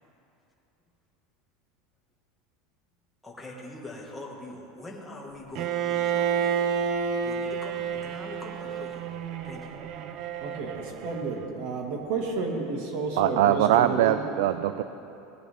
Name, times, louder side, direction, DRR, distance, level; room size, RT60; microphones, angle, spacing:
voice 1, 3.2-6.6 7.2-9.1 9.4-9.8, left 2 dB, 5° left, -3 dB, 1.7 m, -43 dB
Bowed string instrument, 5.6-11.5, right 7 dB, 45° right, 0.6 m, -30 dB
voice 2, 10.4-14.2, right 3 dB, 60° right, 2 dB, 1.8 m, -31 dB
voice 3, 13.2-14.8, right 12 dB, 80° right, 12 dB, 0.3 m, -22 dB
18.5 x 9.6 x 3.6 m, 3.0 s
supercardioid pair, 155°, 0 cm